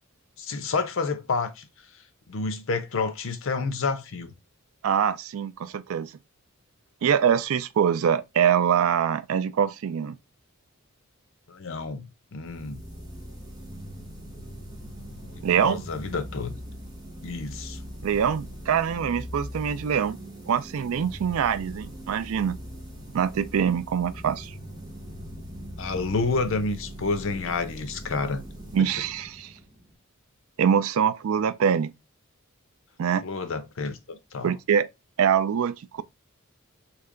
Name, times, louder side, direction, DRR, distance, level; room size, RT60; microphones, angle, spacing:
voice 1, 0.4-1.7 2.3-4.3 11.5-12.8 15.4-16.5 17.2-17.8 25.8-28.4 33.2-34.6, left 4 dB, 65° left, 0.6 m, -29 dB
voice 2, 4.8-6.1 7.0-10.2 15.4-15.8 18.0-20.2 20.5-22.6 23.1-24.5 28.7-29.5 30.6-31.9 33.0-33.2 34.4-34.9 35.2-36.0, right 8 dB, 80° right, 0.4 m, -24 dB
sound 1, 12.4-30.0, equal, 20° right, 1.3 m, -41 dB
3.3 x 2.9 x 3.7 m
head